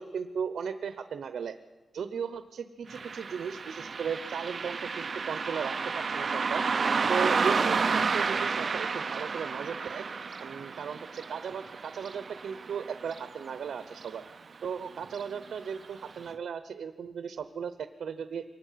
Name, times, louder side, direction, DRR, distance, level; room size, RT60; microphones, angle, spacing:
voice 1, 0.0-1.6 1.9-6.6 7.1-10.1 10.4-14.2 14.6-18.4, right 7 dB, 75° right, 10 dB, 0.8 m, -36 dB
Car passing by, 2.9-13.7 14.0-14.1 15.0-15.2 15.7-15.8 16.3-16.4, right 5 dB, 40° right, 0.6 m, -31 dB
24.0 x 19.5 x 5.8 m, 1.2 s
wide cardioid pair, 140°, 0 cm